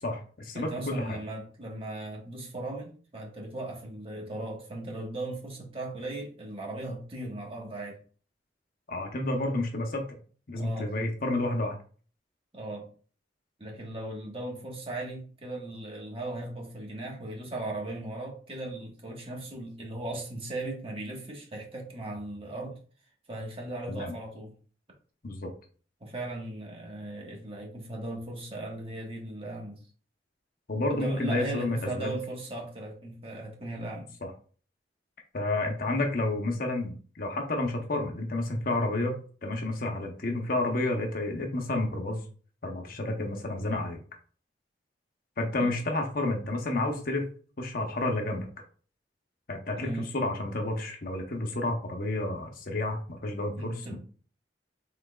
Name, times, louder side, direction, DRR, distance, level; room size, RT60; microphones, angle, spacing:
voice 1, 0.0-1.2 8.9-10.2 10.5-11.7 23.9-24.1 25.2-25.5 30.7-32.1 34.2-34.3 35.3-42.2 42.6-44.0 45.4-47.3 47.6-48.5 49.5-53.9, left 2 dB, 55° left, 3 dB, 0.8 m, -30 dB
voice 2, 0.5-8.0 10.6-10.9 12.5-12.9 13.6-22.8 23.3-24.5 26.0-29.8 30.9-34.1 45.6-45.7 49.8-50.1 53.5-54.0, right 2 dB, 30° right, 0 dB, 1.4 m, -37 dB
5.9 x 3.9 x 2.3 m, 0.42 s
head